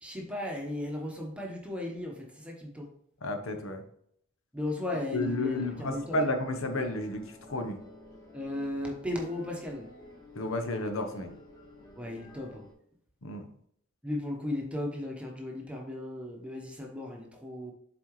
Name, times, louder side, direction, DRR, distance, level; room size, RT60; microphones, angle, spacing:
voice 1, 0.0-2.9 4.5-6.2 8.3-9.9 12.0-12.7 14.0-17.7, left 1 dB, 5° right, 0 dB, 1.0 m, -36 dB
voice 2, 3.2-3.8 5.1-7.8 10.4-11.3 13.2-13.5, left 2 dB, 65° left, 6 dB, 0.9 m, -32 dB
sound 1, 5.2-12.7, left 2 dB, 15° left, 1.5 m, -51 dB
7.5 x 4.3 x 3.2 m, 0.68 s
head